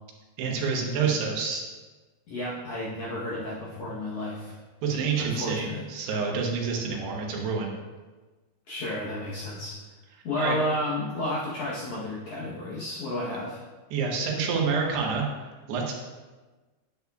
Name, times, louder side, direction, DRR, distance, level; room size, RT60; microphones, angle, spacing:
voice 1, 0.4-1.6 4.8-7.7 10.4-10.6 13.9-15.3 15.7-16.0, right 5 dB, 80° right, 0 dB, 3.1 m, -28 dB
voice 2, 2.3-4.6 5.2-5.8 8.7-9.8 10.2-13.6, left 1 dB, 70° left, -6 dB, 1.8 m, -32 dB
10.0 x 8.1 x 2.3 m, 1.2 s
omnidirectional pair, 4.8 m